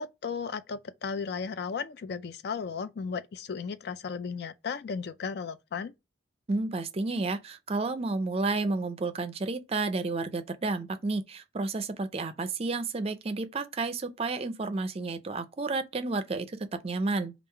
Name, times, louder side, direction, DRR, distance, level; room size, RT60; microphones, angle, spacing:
voice 1, 0.0-5.9, left 5 dB, 55° left, 0.4 m, -35 dB
voice 2, 6.5-16.5 16.8-17.3, right 3 dB, 30° right, 0.5 m, -31 dB
3.6 x 2.4 x 4.4 m
head